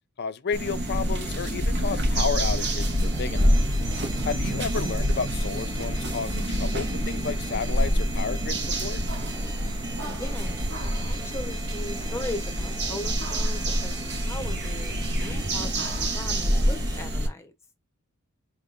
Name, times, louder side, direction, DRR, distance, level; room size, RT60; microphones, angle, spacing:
voice 1, 0.2-3.5 4.3-9.0, left 5 dB, 45° left, 0.5 m, -32 dB
sound 1, 0.5-17.3, equal, 50° right, 1.2 m, -27 dB
sound 2, 2.2-17.0, right 2 dB, 15° right, 0.6 m, -43 dB
voice 2, 4.2-4.6 10.0-14.9 15.2-17.5, left 2 dB, 10° left, 0.8 m, -39 dB
sound 3, 10.4-15.7, right 1 dB, 80° right, 0.6 m, -44 dB
4.6 x 3.6 x 2.5 m
head